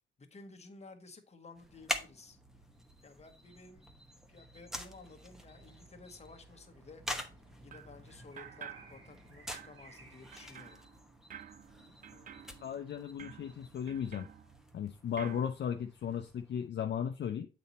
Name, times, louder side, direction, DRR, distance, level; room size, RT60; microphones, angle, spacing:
voice 1, 0.2-2.4 3.0-3.9 4.3-7.0 7.6-10.8, left 3 dB, 30° left, 1.2 m, -54 dB
sound 1, 1.5-16.7, equal, ahead, 0.9 m, -46 dB
sound 2, 4.7-10.7, right 2 dB, 85° right, 2.4 m, -61 dB
sound 3, 7.7-8.0 8.4-9.2 9.5-14.8 15.2-15.5, right 8 dB, 40° right, 0.4 m, -51 dB
voice 2, 12.6-14.3 14.7-17.5, left 8 dB, 55° left, 0.6 m, -36 dB
7.8 x 4.2 x 4.1 m
cardioid pair, 110°, 21 cm